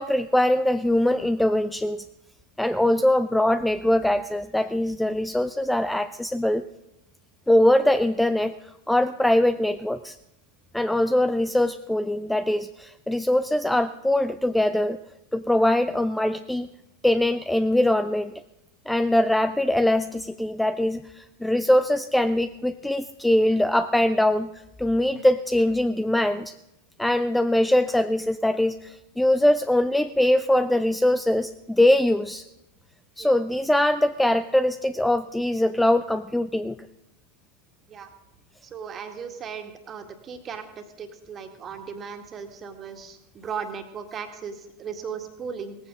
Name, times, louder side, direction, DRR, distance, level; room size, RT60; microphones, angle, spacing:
voice 1, 0.0-2.0 2.6-6.6 7.5-8.5 8.9-10.2 10.7-15.0 15.3-16.7 17.0-18.3 18.9-24.5 24.8-26.5 27.0-32.5 33.2-36.8, left 1 dB, 5° left, 12 dB, 0.5 m, -22 dB
voice 2, 38.6-45.8, right 6 dB, 25° right, 6 dB, 2.0 m, -37 dB
18.5 x 15.0 x 3.8 m, 0.90 s
figure-of-eight pair, 90°, 0 cm